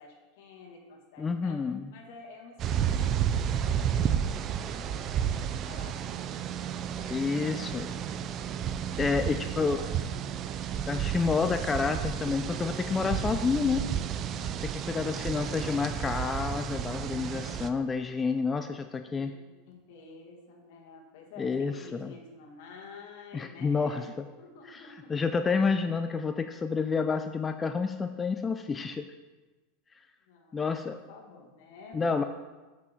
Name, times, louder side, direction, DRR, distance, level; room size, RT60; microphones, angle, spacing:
voice 1, 0.0-1.6 1.9-4.3 4.7-6.3 6.7-8.1 9.2-9.9 14.9-16.1 19.1-19.4 19.7-24.1 24.4-25.6 30.3-30.8 31.1-32.2, left 4 dB, 70° left, 0 dB, 1.9 m, -50 dB
voice 2, 1.2-1.8 7.1-7.9 9.0-9.8 10.9-13.8 14.6-19.3 21.4-22.1 23.3-24.3 24.7-24.8 25.1-29.1 30.5-31.0 31.9-32.2, left 5 dB, 20° left, 8 dB, 0.4 m, -29 dB
sound 1, 2.6-17.7, right 8 dB, 40° right, 0.5 m, -32 dB
7.5 x 6.2 x 4.5 m, 1.2 s
supercardioid pair, 125°, 0 cm